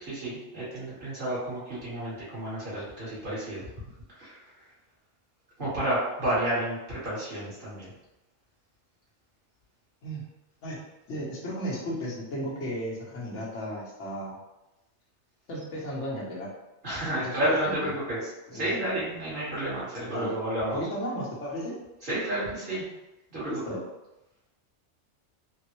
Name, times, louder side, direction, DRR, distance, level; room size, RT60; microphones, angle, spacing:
voice 1, 0.1-3.6 4.1-4.4 5.6-7.9 16.8-18.2 18.5-20.8 22.0-22.8 23.3-23.7, right 1 dB, 45° right, -10 dB, 1.5 m, -31 dB
voice 2, 11.1-14.4 15.5-16.5 17.2-17.9 18.5-18.7 20.1-20.4 20.7-21.8 23.5-23.8, equal, 80° left, -4 dB, 1.2 m, -34 dB
3.7 x 2.0 x 2.9 m, 0.98 s
omnidirectional pair, 1.2 m